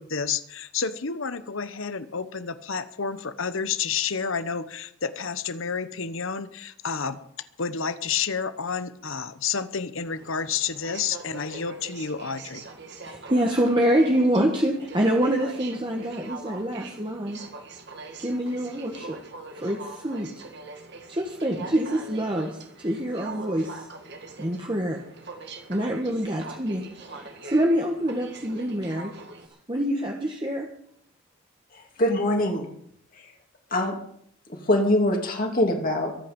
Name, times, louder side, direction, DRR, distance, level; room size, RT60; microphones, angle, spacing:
voice 1, 0.0-7.2 7.6-12.7, left 6 dB, 65° left, 13 dB, 1.1 m, -30 dB
Aircraft, 10.1-29.5, right 3 dB, 50° right, 1.9 m, -42 dB
voice 2, 13.0-17.4 18.2-19.2 19.6-20.3 21.1-23.9 24.4-25.0 25.5-29.1 29.7-30.7, right 1 dB, 20° right, 1 dB, 1.4 m, -26 dB
voice 3, 31.7-32.7 33.7-34.0 34.6-36.2, left 1 dB, 40° left, 2 dB, 2.7 m, -23 dB
23.0 x 9.1 x 5.4 m, 0.69 s
head